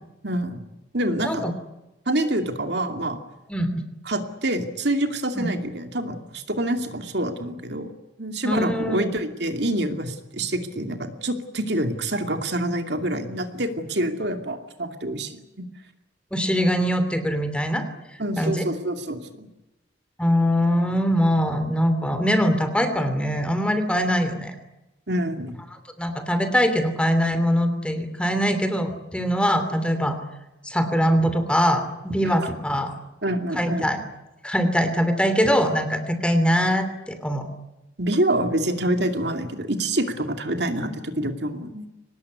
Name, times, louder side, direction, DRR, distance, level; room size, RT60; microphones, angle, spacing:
voice 1, 0.2-0.6 0.9-1.4 2.1-3.2 4.1-7.9 8.2-15.7 18.2-19.5 25.1-25.6 32.2-32.4 33.2-33.9 38.0-41.9, right 1 dB, 60° right, 6 dB, 2.6 m, -26 dB
voice 2, 3.5-3.8 5.3-5.5 8.4-9.0 16.3-17.8 18.4-18.6 20.2-24.5 26.0-30.2 30.6-33.0 33.5-34.0 34.4-37.5, equal, 5° left, 9 dB, 2.9 m, -22 dB
24.0 x 19.5 x 9.6 m, 0.98 s
head